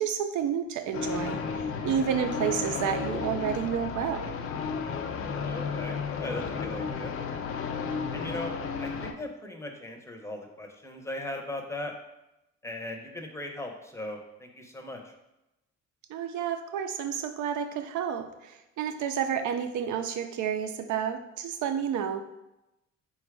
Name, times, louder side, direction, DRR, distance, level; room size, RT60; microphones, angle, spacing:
voice 1, 0.0-1.4 1.8-4.3 16.1-22.2, right 8 dB, 75° right, 7 dB, 0.5 m, -30 dB
sound 1, 0.9-9.1, left 5 dB, 45° left, 0.5 m, -33 dB
voice 2, 5.4-7.1 8.1-11.9 12.6-15.1, left 1 dB, 10° left, 2 dB, 0.7 m, -38 dB
4.2 x 2.3 x 4.6 m, 0.93 s
cardioid pair, 90°, 30 cm